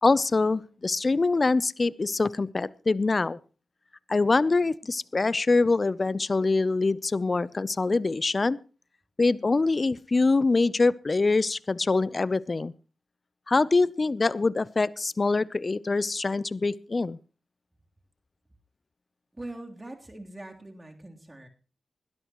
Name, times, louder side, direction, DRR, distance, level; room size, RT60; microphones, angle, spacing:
voice 1, 0.0-3.4 4.1-8.6 9.2-12.7 13.5-17.2, left 3 dB, 45° left, 20 dB, 0.6 m, -24 dB
voice 2, 19.3-21.5, right 1 dB, 25° right, 2 dB, 3.4 m, -42 dB
20.5 x 13.0 x 3.1 m, 0.35 s
cardioid pair, 45°, 0 cm